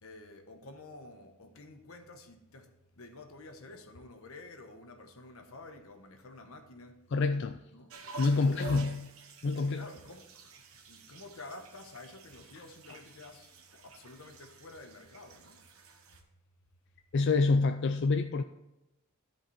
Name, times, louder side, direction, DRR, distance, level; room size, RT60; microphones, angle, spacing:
voice 1, 0.0-7.0 7.7-7.9 8.3-9.0 9.6-15.6, left 2 dB, 80° left, 1.1 m, -50 dB
voice 2, 7.1-7.6 8.2-9.1 9.4-9.9 12.5-12.6 17.1-18.4, left 3 dB, 55° left, 0.4 m, -27 dB
sound 1, 7.9-16.2, right 3 dB, 75° right, 1.3 m, -50 dB
13.0 x 5.2 x 4.2 m
head